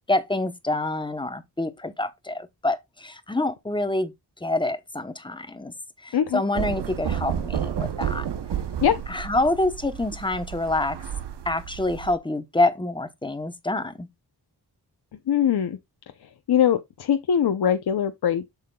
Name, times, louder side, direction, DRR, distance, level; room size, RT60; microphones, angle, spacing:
voice 1, 0.1-4.1 4.4-5.7 6.0-8.3 9.1-11.0 11.4-14.1, left 2 dB, 10° left, 0.9 m, -26 dB
sound 1, 6.5-12.2, right 9 dB, 85° right, 0.9 m, -31 dB
voice 2, 15.3-15.8 16.5-18.5, left 9 dB, 70° left, 0.8 m, -22 dB
7.6 x 7.3 x 2.3 m
wide cardioid pair, 130°, 40 cm